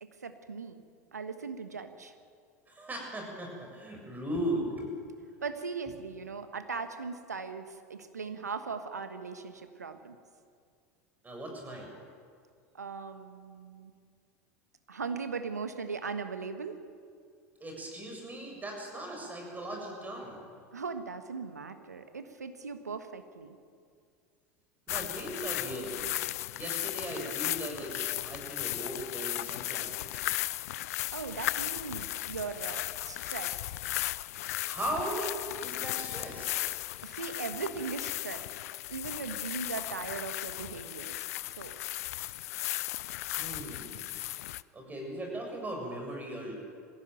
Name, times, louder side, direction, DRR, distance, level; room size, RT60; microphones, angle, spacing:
voice 1, 0.0-0.8 1.1-2.1 5.4-10.2 12.7-13.9 14.9-16.8 20.7-23.6 31.1-33.8 37.0-38.5 38.9-41.3 41.6-41.8, right 5 dB, 90° right, 9 dB, 1.4 m, -39 dB
voice 2, 2.7-5.0 11.2-11.9 17.6-20.5 24.9-26.2 26.5-30.3 34.6-36.7 43.4-44.0 44.7-46.5, right 1 dB, 20° right, 1 dB, 7.6 m, -38 dB
sound 1, 24.9-44.6, left 16 dB, 70° left, 0.5 m, -36 dB
20.5 x 16.0 x 9.1 m, 2.2 s
hypercardioid pair, 80°, 9 cm